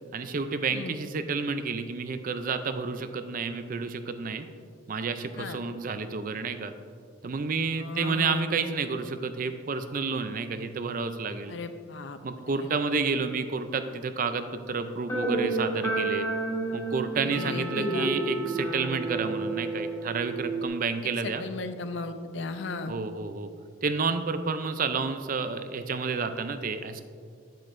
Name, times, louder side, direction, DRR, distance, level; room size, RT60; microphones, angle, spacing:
voice 1, 0.1-4.5 4.9-6.7 7.2-11.5 12.2-16.3 16.7-21.4 22.9-23.5 23.8-27.0, right 4 dB, 45° right, 9 dB, 0.4 m, -30 dB
voice 2, 7.8-8.4 11.5-12.2 12.5-12.7 17.2-18.1 21.2-22.9, left 3 dB, 70° left, 9 dB, 0.5 m, -36 dB
sound 1, 15.1-20.7, right 2 dB, 15° left, 1.6 m, -30 dB
Percussion / Church bell, 17.3-21.3, right 5 dB, 80° right, 1.0 m, -44 dB
9.2 x 7.6 x 2.6 m, 2.1 s
head